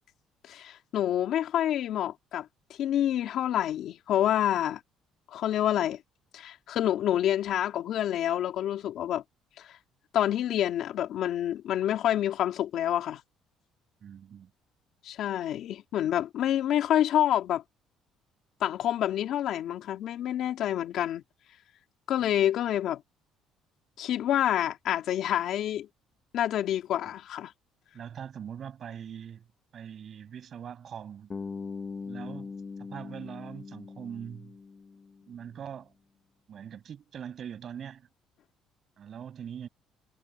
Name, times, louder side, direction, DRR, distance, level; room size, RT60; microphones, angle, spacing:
voice 1, 0.5-2.5 2.8-4.8 5.3-6.0 6.3-9.2 9.6-9.7 10.1-13.2 15.0-17.6 18.6-21.2 22.1-23.0 24.0-25.9 26.3-27.5, left 11 dB, 60° left, 3.2 m, -27 dB
voice 2, 14.0-14.5 27.9-29.4 29.7-31.3 32.0-32.5 32.8-34.5 35.3-35.9 36.5-38.1 39.0-39.7, right 8 dB, 40° right, 6.4 m, -42 dB
Bass guitar, 31.3-35.4, left 4 dB, 25° left, 1.3 m, -41 dB
cardioid pair, 145°, 0 cm